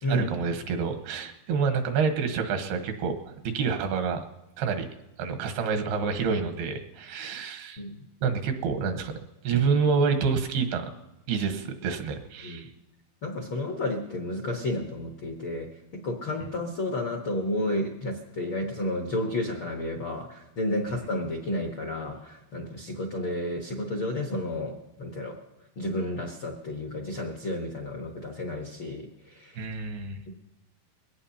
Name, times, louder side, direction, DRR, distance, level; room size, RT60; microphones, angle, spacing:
voice 1, 0.1-4.2 4.6-4.9 5.2-7.8 8.2-9.2 9.4-10.9 11.3-12.7 29.6-30.2, right 5 dB, 85° right, 6 dB, 3.1 m, -28 dB
voice 2, 13.2-25.4 25.8-29.6, left 1 dB, 75° left, 2 dB, 1.1 m, -31 dB
22.0 x 17.5 x 2.9 m, 0.97 s
omnidirectional pair, 4.4 m